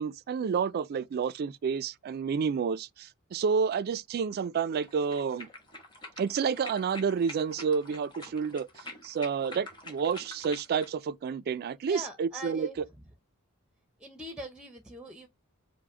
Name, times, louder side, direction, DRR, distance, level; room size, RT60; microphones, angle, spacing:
voice 1, 0.0-5.5 6.2-12.7, right 6 dB, 45° right, 0.3 m, -30 dB
sound 1, 4.7-10.9, left 2 dB, 20° left, 1.3 m, -46 dB
voice 2, 11.8-12.8 14.0-15.3, right 1 dB, 5° right, 0.6 m, -42 dB
4.8 x 2.1 x 4.8 m
head